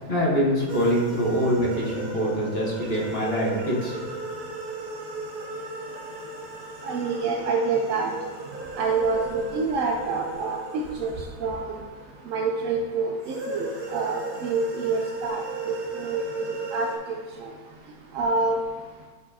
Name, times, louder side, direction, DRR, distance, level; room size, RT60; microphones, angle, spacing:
voice 1, 0.1-4.0, equal, 40° left, -5 dB, 1.3 m, -24 dB
sound 1, 0.7-12.4 13.2-17.0, right 3 dB, 40° right, 0.9 m, -36 dB
voice 2, 6.8-8.1 8.8-10.6 11.0-11.1 11.4-11.7 12.3-17.5 18.1-18.6, right 4 dB, 70° right, 1 dB, 0.8 m, -27 dB
8.6 x 4.2 x 2.7 m, 1.4 s
omnidirectional pair, 1.8 m